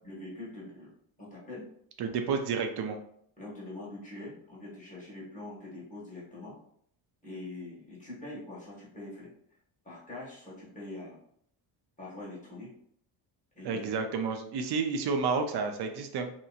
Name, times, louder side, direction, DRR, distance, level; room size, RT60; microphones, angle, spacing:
voice 1, 0.0-0.9 1.2-1.7 2.0-2.1 3.4-6.6 7.2-9.3 9.8-11.2 12.0-12.7 13.5-13.9, left 2 dB, 15° left, -7 dB, 1.4 m, -43 dB
voice 2, 2.0-3.0 13.6-16.3, right 5 dB, 55° right, 6 dB, 0.5 m, -30 dB
2.8 x 2.7 x 2.4 m, 0.68 s
cardioid pair, 120°, 48 cm